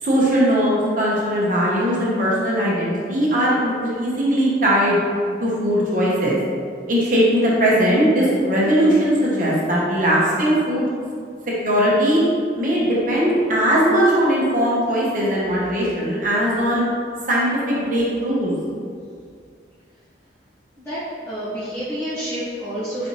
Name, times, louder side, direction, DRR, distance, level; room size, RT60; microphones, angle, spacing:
voice 1, 0.0-5.0 5.4-6.4 6.9-10.9 11.6-12.2 12.5-16.8 17.3-18.5, equal, 50° right, -6 dB, 0.9 m, -19 dB
voice 2, 21.3-23.1, equal, 15° left, -17 dB, 1.3 m, -28 dB
4.2 x 4.1 x 3.0 m, 2.2 s
head